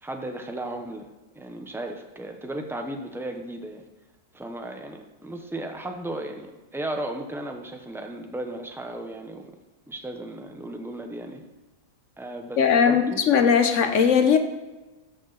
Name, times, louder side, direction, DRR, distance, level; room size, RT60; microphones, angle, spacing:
voice 1, 0.0-1.1 1.3-3.8 4.3-9.5 9.9-11.4 12.2-13.2, right 1 dB, 5° right, 4 dB, 0.4 m, -35 dB
voice 2, 12.6-14.4, left 7 dB, 60° left, 7 dB, 1.0 m, -19 dB
13.5 x 6.2 x 4.0 m, 1.2 s
omnidirectional pair, 1.7 m